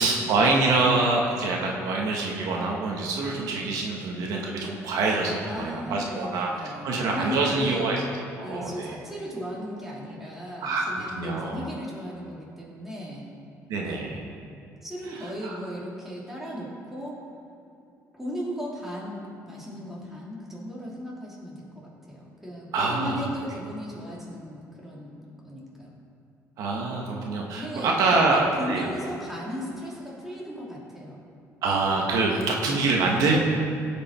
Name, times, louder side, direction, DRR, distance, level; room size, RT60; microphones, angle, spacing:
voice 1, 0.0-6.5 6.8-8.0 8.4-9.0 10.6-11.7 13.7-14.2 15.2-15.6 22.7-23.2 26.6-28.9 31.6-33.4, right 3 dB, 75° right, -1 dB, 1.4 m, -25 dB
voice 2, 5.4-7.9 8.4-13.3 13.8-14.1 14.8-17.2 18.1-19.2 19.5-25.9 27.5-31.2 33.2-33.4, equal, 5° right, -5 dB, 2.6 m, -36 dB
15.5 x 5.2 x 4.4 m, 2.6 s
cardioid pair, 115°, 6 cm